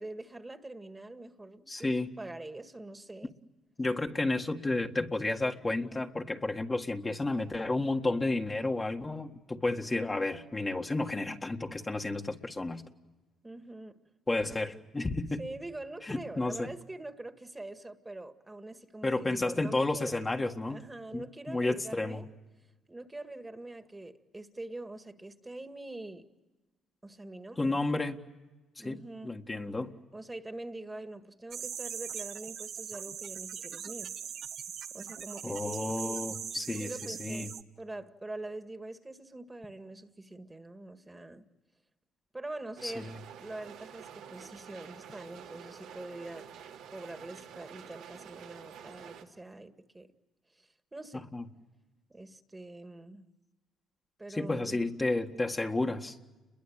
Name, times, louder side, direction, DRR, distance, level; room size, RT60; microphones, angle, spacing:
voice 1, 0.0-3.3 13.4-14.0 15.4-20.1 20.7-22.3 22.9-26.3 27.0-27.8 28.8-29.4 30.1-34.1 34.9-36.2 36.7-41.4 42.3-43.1 43.4-46.5 46.9-50.1 50.5-51.3 52.1-53.3 54.2-54.8, right 2 dB, 15° right, 2.0 m, -44 dB
voice 2, 1.7-2.1 3.8-12.8 14.3-15.4 16.1-16.7 19.0-20.8 21.1-22.2 27.6-28.2 28.8-29.9 35.4-37.5 42.8-43.1 51.3-51.4 54.3-56.2, left 2 dB, 20° left, 1.8 m, -32 dB
sound 1, 31.5-37.6, right 8 dB, 65° right, 1.4 m, -40 dB
sound 2, 42.8-49.2, right 8 dB, 85° right, 2.9 m, -49 dB
30.0 x 22.5 x 8.8 m
supercardioid pair, 70°, 0 cm